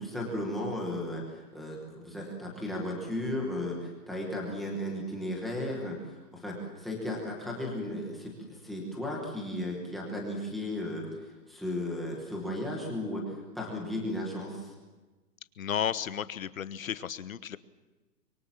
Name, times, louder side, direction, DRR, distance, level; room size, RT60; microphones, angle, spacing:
voice 1, 0.0-14.7, left 1 dB, ahead, -1 dB, 1.1 m, -35 dB
voice 2, 15.6-17.6, left 9 dB, 55° left, 14 dB, 1.2 m, -33 dB
25.0 x 23.0 x 7.4 m, 1.2 s
hypercardioid pair, 180°, 49 cm